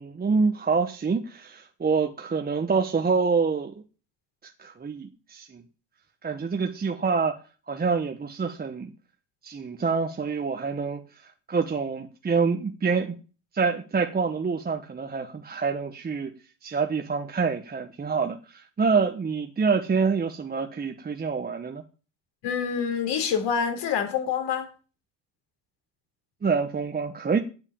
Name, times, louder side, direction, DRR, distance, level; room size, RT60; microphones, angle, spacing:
voice 1, 0.0-3.7 4.6-5.6 6.2-7.4 7.7-8.9 9.4-11.0 11.5-13.2 13.5-16.3 16.6-21.8 26.4-27.4, right 5 dB, 20° right, 1.2 m, -26 dB
voice 2, 22.4-24.7, left 7 dB, 60° left, 4.3 m, -26 dB
8.9 x 8.1 x 8.8 m
supercardioid pair, 90°, 48 cm